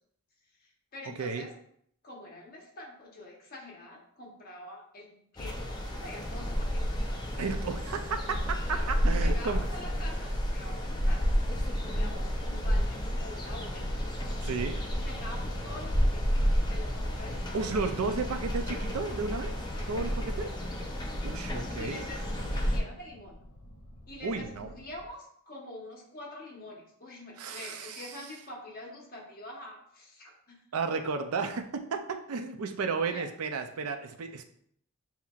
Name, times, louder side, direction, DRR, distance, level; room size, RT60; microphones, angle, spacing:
voice 1, 0.6-1.5 2.0-6.8 8.7-8.9 9.2-11.3 11.7-13.9 15.0-16.2 16.7-17.7 18.3-18.7 19.7-19.9 21.1-21.2 21.8-23.4 24.1-30.6 33.1-33.2, left 1 dB, 40° left, -2 dB, 1.2 m, -46 dB
sound 1, 5.4-22.8, equal, 20° left, 0.5 m, -31 dB
voice 2, 7.4-8.6 8.9-9.6 14.4-14.8 17.5-19.5 19.9-20.5 21.2-22.0 24.2-24.7 27.4-28.1 30.7-34.4, right 4 dB, 85° right, 7 dB, 0.5 m, -33 dB
sound 2, 13.7-25.1, equal, 75° left, 0.9 m, -44 dB
7.0 x 2.8 x 2.4 m, 0.68 s
head